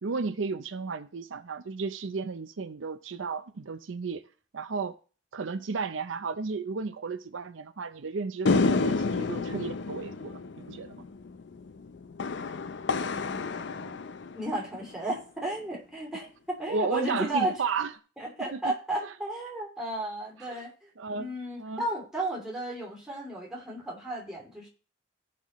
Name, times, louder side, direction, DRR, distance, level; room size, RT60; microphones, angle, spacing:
voice 1, 0.0-4.3 4.5-5.0 5.3-11.0 16.7-17.9 18.5-18.7 19.0-19.1 20.4-20.6 21.0-21.8, right 4 dB, 85° right, 0.6 m, -34 dB
sound 1, 8.5-15.0, left 3 dB, 65° left, 0.5 m, -30 dB
voice 2, 13.0-14.0 14.3-17.6 18.2-20.7 21.1-24.7, right 1 dB, 5° right, 2.9 m, -34 dB
15.0 x 5.9 x 3.1 m
head